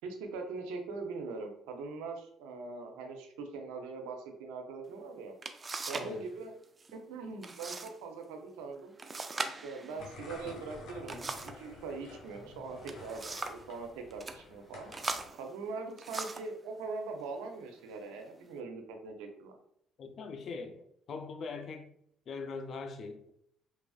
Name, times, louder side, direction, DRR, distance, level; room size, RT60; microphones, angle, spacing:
voice 1, 0.0-5.4 5.9-6.5 6.9-8.9 9.4-14.9 15.3-19.6, right 4 dB, 90° right, 0.5 m, -42 dB
sound 1, 4.9-5.0 5.4-6.2 6.4-6.9 7.4-7.9 8.2-8.3 9.0-11.7 12.6-13.7 14.1-14.4 14.9-16.5 17.3-17.5 18.0-18.5, right 3 dB, 30° right, 0.3 m, -40 dB
voice 2, 6.0-6.3 20.0-21.9 22.3-23.3, left 4 dB, 55° left, 0.4 m, -42 dB
sound 2, 10.0-15.3, left 3 dB, 75° left, 0.7 m, -50 dB
3.0 x 2.3 x 2.3 m
supercardioid pair, 75°, 0 cm